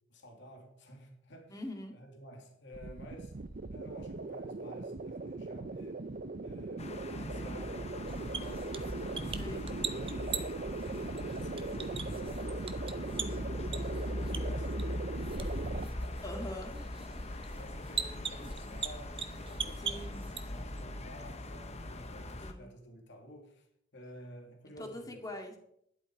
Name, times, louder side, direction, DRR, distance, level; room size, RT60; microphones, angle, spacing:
voice 1, 0.1-1.6 1.9-3.3 3.7-6.0 6.4-8.7 9.0-10.4 11.0-15.0 16.0-16.3 17.4-19.2 19.5-23.7 23.9-25.2, equal, 65° left, 2 dB, 2.5 m, -51 dB
voice 2, 1.5-1.9 9.4-9.7 16.2-16.8 19.8-20.3 22.4-22.7 24.8-25.6, left 1 dB, 20° left, 3 dB, 2.2 m, -42 dB
sound 1, 2.7-15.9, right 3 dB, 45° right, 0.6 m, -40 dB
sound 2, 6.8-22.5, left 1 dB, 35° left, 1.1 m, -41 dB
sound 3, 8.1-20.8, right 5 dB, 30° right, 1.0 m, -42 dB
12.0 x 11.0 x 4.7 m, 0.72 s
head